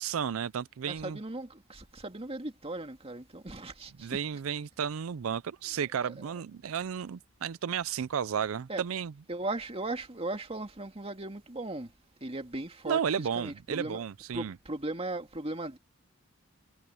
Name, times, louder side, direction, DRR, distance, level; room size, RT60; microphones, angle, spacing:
voice 1, 0.0-1.2 4.0-9.1 12.8-14.5, right 7 dB, 80° right, 0.4 m, -33 dB
voice 2, 0.9-4.2 6.0-6.1 8.7-8.8 9.3-11.9 12.2-14.0 14.3-15.8, right 2 dB, 30° right, 2.2 m, -37 dB
head